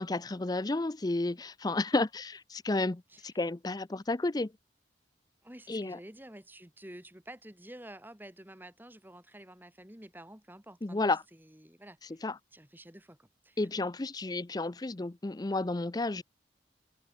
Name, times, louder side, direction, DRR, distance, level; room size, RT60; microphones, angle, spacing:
voice 1, 0.0-4.5 5.7-6.0 10.8-11.2 12.2-12.4 13.6-16.2, left 2 dB, 20° left, 0.5 m, -31 dB
voice 2, 5.4-13.6, right 1 dB, 10° right, 2.7 m, -50 dB
head